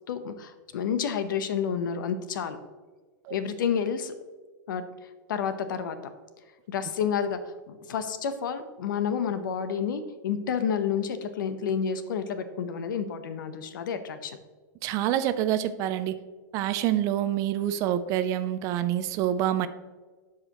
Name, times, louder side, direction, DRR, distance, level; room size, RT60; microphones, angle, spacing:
voice 1, 0.1-2.6 3.3-4.1 4.7-4.8 5.3-6.1 6.7-7.4 7.7-14.4, left 7 dB, 80° left, 10 dB, 0.8 m, -30 dB
voice 2, 14.8-16.2 16.5-19.7, right 11 dB, 30° right, 13 dB, 0.4 m, -26 dB
12.5 x 4.8 x 3.0 m, 1.4 s
supercardioid pair, 155°, 11 cm